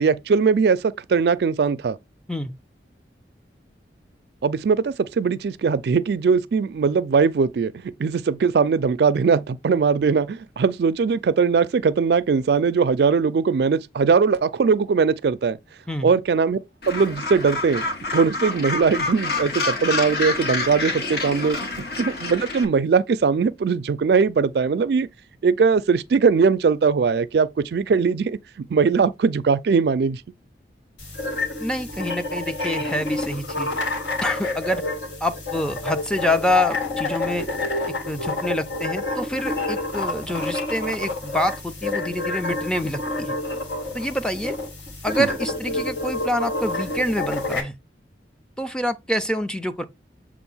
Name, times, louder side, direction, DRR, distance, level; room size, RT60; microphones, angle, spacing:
voice 1, 0.0-2.0 4.4-7.7 8.0-15.6 16.0-16.6 16.9-17.9 18.1-21.6 22.0-25.1 25.4-28.4 28.7-30.2 45.2-45.3, right 5 dB, 60° right, 0.4 m, -20 dB
Gull seagull, 16.8-22.6, left 3 dB, 60° left, 1.3 m, -27 dB
sound 1, 31.0-47.6, left 2 dB, 75° left, 1.8 m, -28 dB
voice 2, 31.6-33.7 34.2-34.8 35.2-37.5 38.1-43.4 43.9-44.5 45.0-47.7 48.6-49.8, left 1 dB, 5° left, 0.4 m, -26 dB
6.9 x 2.5 x 5.4 m
head